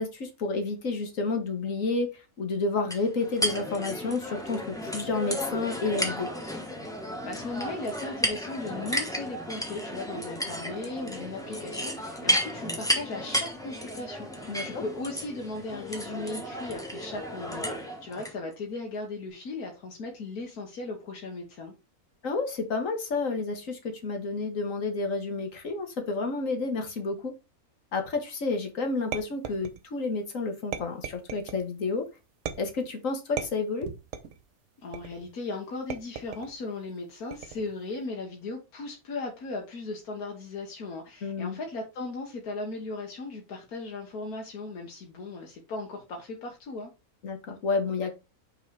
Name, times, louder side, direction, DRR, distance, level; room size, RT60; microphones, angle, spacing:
voice 1, 0.0-6.3 14.5-14.8 22.2-27.3 27.9-32.0 32.6-33.9 41.2-41.6 47.2-48.2, left 3 dB, 60° left, 1.7 m, -30 dB
sound 1, 2.9-18.3, equal, 5° left, 1.1 m, -33 dB
voice 2, 7.2-21.7 34.8-46.9, left 3 dB, 80° left, 1.7 m, -37 dB
sound 2, 29.1-30.1 30.7-31.6 32.5-32.9 33.4-34.4 34.9-35.3 35.9-36.6 37.3-37.8, right 8 dB, 65° right, 1.1 m, -37 dB
5.6 x 3.8 x 4.6 m
omnidirectional pair, 1.6 m